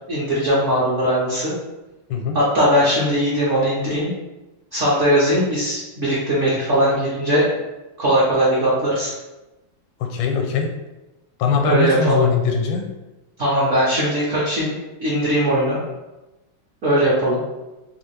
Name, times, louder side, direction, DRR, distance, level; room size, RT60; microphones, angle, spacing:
voice 1, 0.1-1.5 2.3-4.1 4.7-7.5 8.0-9.1 11.6-12.2 13.4-15.8 16.8-17.4, equal, 55° right, -8 dB, 0.8 m, -19 dB
voice 2, 10.0-10.7 11.4-12.8, left 5 dB, 80° left, 3 dB, 1.4 m, -21 dB
3.5 x 2.4 x 3.2 m, 1.0 s
omnidirectional pair, 2.3 m